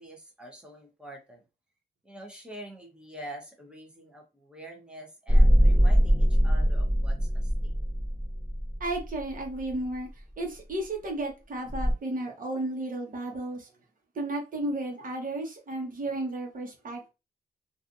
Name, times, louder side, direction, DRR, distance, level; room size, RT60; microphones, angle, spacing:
voice 1, 0.0-1.4 2.0-7.7, right 1 dB, 5° right, 1.1 m, -46 dB
sound 1, 5.3-9.7 11.7-11.9, equal, 20° right, 1.5 m, -22 dB
voice 2, 8.8-10.1 10.4-13.7 14.1-17.1, right 2 dB, 50° right, 1.2 m, -33 dB
3.2 x 2.6 x 2.6 m
wide cardioid pair, 130°, 17 cm